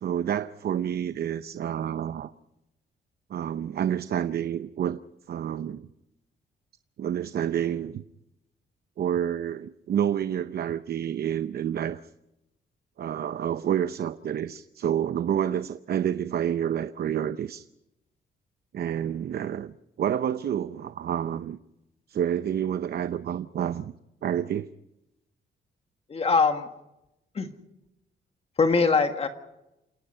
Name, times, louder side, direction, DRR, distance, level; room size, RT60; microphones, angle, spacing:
voice 1, 0.0-2.3 3.3-5.0 5.3-5.9 7.0-8.0 9.0-12.0 13.0-17.7 18.7-21.6 22.1-23.9 24.2-24.7, right 9 dB, 55° right, 12 dB, 0.7 m, -29 dB
voice 2, 26.1-26.7 27.3-27.5 28.6-29.3, left 4 dB, 30° left, 6 dB, 1.7 m, -22 dB
28.5 x 18.0 x 5.6 m, 0.90 s
cardioid pair, 140°, 19 cm